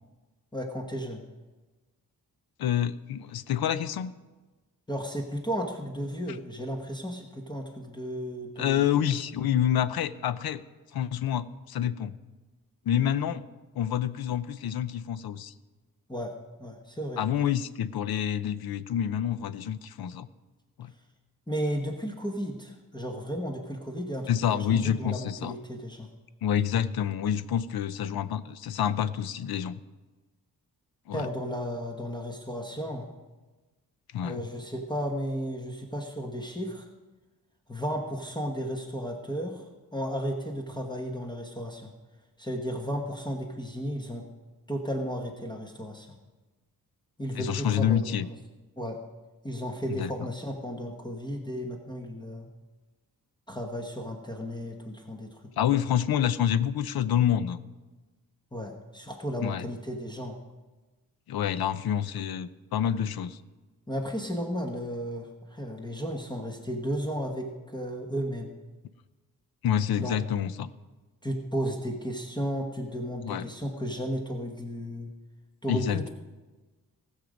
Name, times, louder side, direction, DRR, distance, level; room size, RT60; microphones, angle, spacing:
voice 1, 0.5-1.2 4.9-8.9 16.1-16.3 16.6-17.2 21.5-26.1 31.1-33.1 34.2-36.9 37.7-39.6 39.9-41.9 42.4-44.3 44.7-46.1 47.2-48.2 48.8-49.0 49.4-52.5 53.5-55.4 55.7-55.8 58.5-60.4 63.9-68.5 70.0-70.2 71.2-75.1 75.6-76.1, equal, 10° left, 1 dB, 1.1 m, -34 dB
voice 2, 2.6-4.1 8.6-10.6 10.9-12.1 12.9-13.4 13.8-15.5 17.2-20.3 20.8-20.9 24.3-25.5 26.4-29.7 31.1-31.3 34.1-34.4 47.3-48.3 49.9-50.3 55.6-57.6 59.4-59.7 61.3-63.4 69.6-70.7 73.2-73.5 75.7-76.1, left 9 dB, 85° left, 14 dB, 0.6 m, -28 dB
19.0 x 6.6 x 5.2 m, 1.2 s
wide cardioid pair, 120°, 36 cm